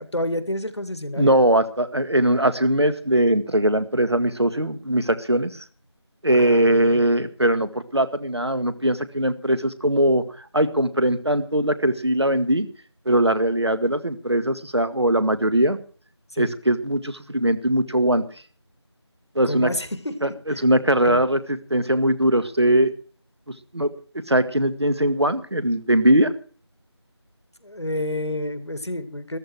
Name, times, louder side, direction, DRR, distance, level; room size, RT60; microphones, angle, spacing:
voice 1, 0.0-1.4 6.3-7.1 16.3-16.5 19.4-20.6 21.0-21.2 27.6-29.4, left 1 dB, 70° left, 11 dB, 2.1 m, -30 dB
voice 2, 1.2-5.6 6.2-12.7 13.1-15.8 16.4-18.2 19.4-19.7 20.2-20.3 20.6-21.4 21.7-22.9 23.7-26.3, right 1 dB, 65° right, 11 dB, 1.9 m, -20 dB
14.5 x 14.0 x 4.6 m, 0.41 s
figure-of-eight pair, 180°, 15 cm